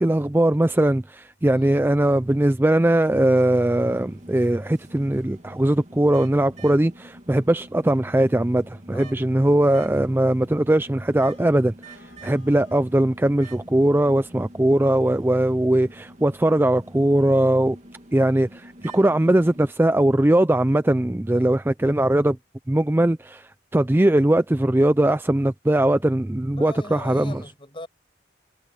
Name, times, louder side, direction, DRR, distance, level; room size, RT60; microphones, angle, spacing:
voice 1, 0.0-17.8 18.1-22.4 22.7-27.4, right 1 dB, 10° right, 0.4 m, -20 dB
voice 2, 1.5-1.8 8.9-9.7 21.3-21.6 26.5-27.9, left 1 dB, 25° left, 7.3 m, -41 dB
sound 1, 3.0-19.7, right 1 dB, 40° right, 2.5 m, -47 dB
Vehicle horn car horn honking, 11.2-12.9, left 3 dB, 90° left, 7.7 m, -55 dB
head